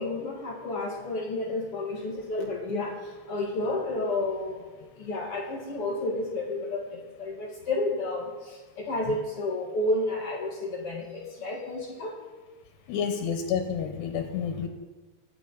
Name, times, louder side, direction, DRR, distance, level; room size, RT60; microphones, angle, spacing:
voice 1, 0.0-12.2, left 2 dB, 45° left, -1 dB, 2.3 m, -31 dB
voice 2, 12.9-14.7, left 7 dB, 85° left, 5 dB, 3.2 m, -29 dB
25.0 x 9.9 x 4.2 m, 1.3 s
omnidirectional pair, 4.7 m